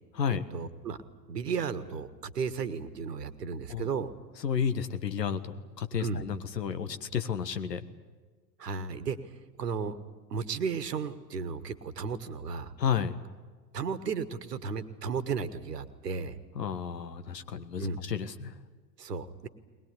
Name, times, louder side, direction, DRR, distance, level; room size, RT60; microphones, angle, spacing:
voice 1, 0.5-1.0 1.3-4.1 6.0-6.2 8.6-9.2 9.6-10.0 10.3-12.7 13.7-16.4 17.8-18.0 19.0-19.5, right 5 dB, 70° right, 14 dB, 1.6 m, -34 dB
voice 2, 4.4-7.8 12.8-13.1 16.5-18.6, left 7 dB, 70° left, 11 dB, 1.6 m, -32 dB
21.0 x 20.5 x 9.8 m, 1.4 s
figure-of-eight pair, 90°, 50 cm